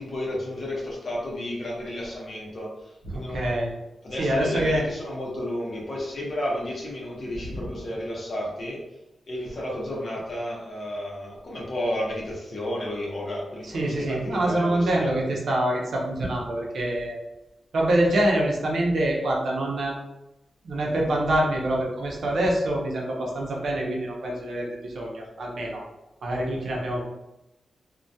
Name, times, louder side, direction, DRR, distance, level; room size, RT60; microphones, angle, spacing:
voice 1, 0.0-3.5 4.0-8.8 9.2-15.1, left 1 dB, 50° left, -4 dB, 0.8 m, -32 dB
voice 2, 3.0-3.7 4.2-4.8 7.5-7.6 13.7-17.1 17.7-20.0 20.6-25.8 26.2-27.1, right 1 dB, 70° right, -2 dB, 0.6 m, -25 dB
2.2 x 2.2 x 2.6 m, 0.94 s
wide cardioid pair, 130°, 0 cm